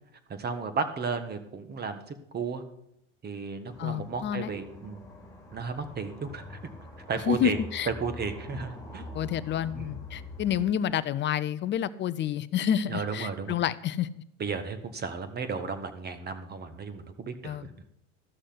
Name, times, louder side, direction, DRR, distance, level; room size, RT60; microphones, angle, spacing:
voice 1, 0.3-2.6 3.2-5.0 5.5-6.6 7.0-7.6 7.9-9.1 9.7-10.0 12.9-13.6 14.4-17.9, right 5 dB, 25° right, 9 dB, 1.6 m, -34 dB
sound 1, 3.7-10.7, left 1 dB, 10° left, 3.4 m, -44 dB
voice 2, 3.8-4.5 7.3-7.9 9.1-14.2 17.4-17.6, left 10 dB, 30° left, 16 dB, 0.7 m, -29 dB
13.5 x 6.3 x 7.9 m, 0.76 s
hypercardioid pair, 100°, 36 cm